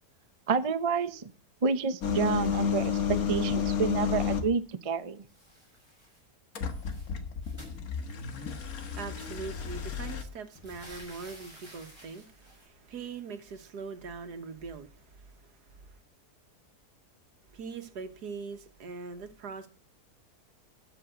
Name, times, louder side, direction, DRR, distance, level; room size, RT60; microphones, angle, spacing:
voice 1, 0.5-1.3 1.6-5.2, right 5 dB, 35° right, 0.6 m, -29 dB
sound 1, 2.0-4.6 6.6-10.2, left 7 dB, 65° left, 1.8 m, -31 dB
sound 2, 5.2-6.3 6.5-8.5 9.5-9.6 9.9-12.7, equal, 15° left, 5.7 m, -52 dB
voice 2, 8.4-16.0 17.5-19.7, right 5 dB, 80° right, 1.9 m, -42 dB
12.5 x 5.8 x 8.0 m
omnidirectional pair, 1.7 m